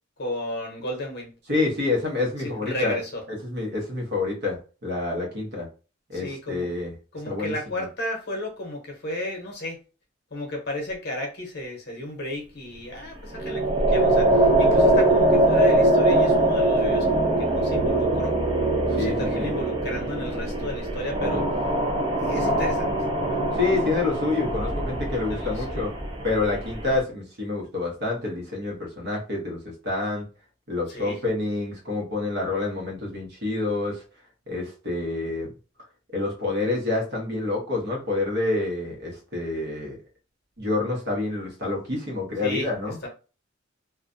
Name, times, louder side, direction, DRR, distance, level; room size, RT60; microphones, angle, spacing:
voice 1, 0.2-1.3 2.4-3.2 6.1-6.7 7.1-9.8 10.3-18.4 18.9-21.5 22.2-22.9 23.7-23.9 25.3-25.8 30.9-31.2 42.4-43.1, left 1 dB, 60° left, 1 dB, 0.8 m, -33 dB
voice 2, 1.5-3.0 3.3-5.7 6.1-6.9 7.3-7.9 19.0-19.5 23.5-25.9 26.2-30.3 30.7-34.0 34.5-35.5 36.1-40.0 40.6-43.0, left 3 dB, 60° right, 0 dB, 0.9 m, -27 dB
Swamp Monsters In The Distance, 13.3-27.0, right 1 dB, 25° right, 0.4 m, -22 dB
2.4 x 2.1 x 2.5 m, 0.34 s
head